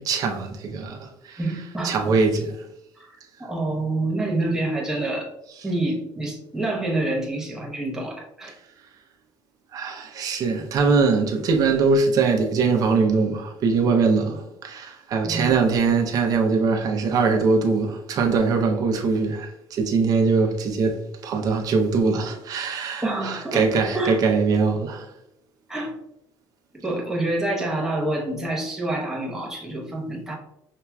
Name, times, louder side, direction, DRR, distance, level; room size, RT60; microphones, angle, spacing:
voice 1, 0.0-1.4 1.8-2.6 9.7-25.1, right 4 dB, 45° right, 0.7 m, -22 dB
voice 2, 1.4-2.1 3.0-3.1 3.4-5.3 5.6-8.5 15.2-15.5 23.0-24.2 25.7-26.0 26.7-30.4, right 2 dB, 5° right, 0.9 m, -27 dB
5.8 x 2.8 x 2.3 m
cardioid pair, 145°, 9 cm